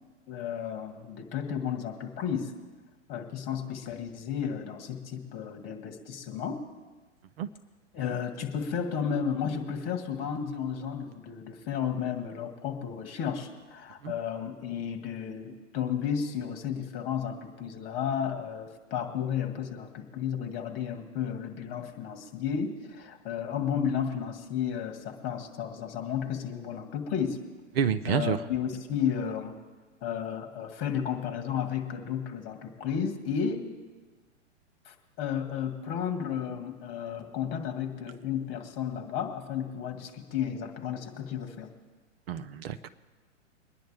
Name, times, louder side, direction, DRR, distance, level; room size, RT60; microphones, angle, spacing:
voice 1, 0.3-2.5 3.1-6.6 7.9-27.4 28.1-29.5 30.0-33.7 34.9-41.7, left 8 dB, 30° left, 4 dB, 1.9 m, -33 dB
voice 2, 27.8-28.4 42.3-42.9, right 8 dB, 50° right, 11 dB, 0.7 m, -28 dB
23.0 x 10.5 x 3.5 m, 1.3 s
figure-of-eight pair, 110°, 37 cm